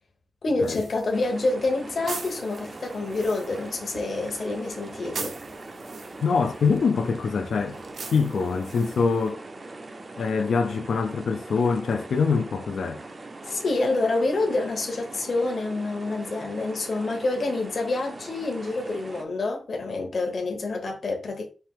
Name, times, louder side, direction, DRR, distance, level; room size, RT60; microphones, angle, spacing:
voice 1, 0.4-5.3 13.4-21.4, left 2 dB, 55° left, 0.9 m, -27 dB
sound 1, 0.6-9.3, right 4 dB, 75° right, 0.7 m, -42 dB
sound 2, 1.1-19.2, right 2 dB, 35° right, 0.5 m, -41 dB
voice 2, 6.2-7.8 8.1-9.4 10.2-13.0, left 5 dB, 80° left, 0.4 m, -24 dB
4.4 x 2.7 x 3.5 m
wide cardioid pair, 160°, 0 cm